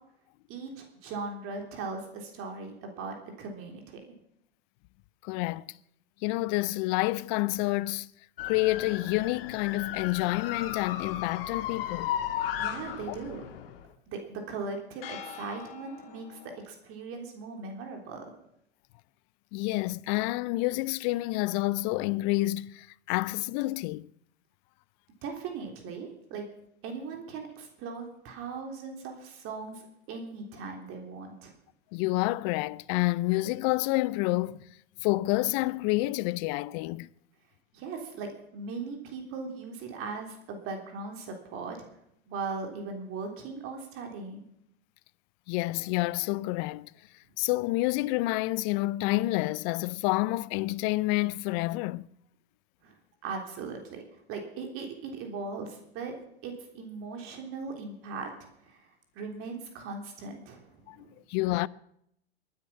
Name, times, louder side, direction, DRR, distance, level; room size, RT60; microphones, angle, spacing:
voice 1, 0.5-4.0 12.6-13.4 14.1-18.3 25.2-26.5 26.8-29.8 30.1-31.5 37.7-41.8 42.3-44.4 52.8-53.0 53.2-54.0 54.3-56.1 56.4-58.3 58.6-58.9 59.1-61.1, right 4 dB, 45° right, 3.5 m, -39 dB
voice 2, 5.2-5.6 6.2-8.1 8.4-12.1 13.1-13.2 19.5-24.1 31.9-34.6 35.0-37.1 45.5-46.9 47.4-52.1 60.9-61.0 61.3-61.7, left 20 dB, 45° left, 0.6 m, -28 dB
sound 1, 8.4-13.9 15.0-16.6, left 10 dB, 65° left, 1.7 m, -36 dB
22.5 x 9.5 x 5.9 m
hypercardioid pair, 95°, 31 cm